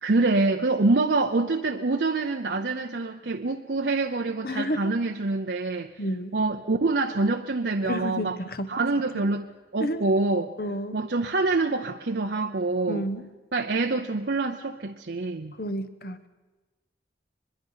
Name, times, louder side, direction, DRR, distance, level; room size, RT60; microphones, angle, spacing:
voice 1, 0.0-6.0 6.3-8.4 8.7-9.5 9.7-10.5 10.9-13.1 13.5-15.5, right 3 dB, 65° right, 4 dB, 0.7 m, -26 dB
voice 2, 4.4-4.9 6.0-6.3 7.8-9.0 9.8-10.0 10.6-11.0 12.9-13.2 15.6-16.2, equal, 50° left, 12 dB, 1.1 m, -31 dB
24.0 x 21.5 x 5.7 m, 1.2 s
head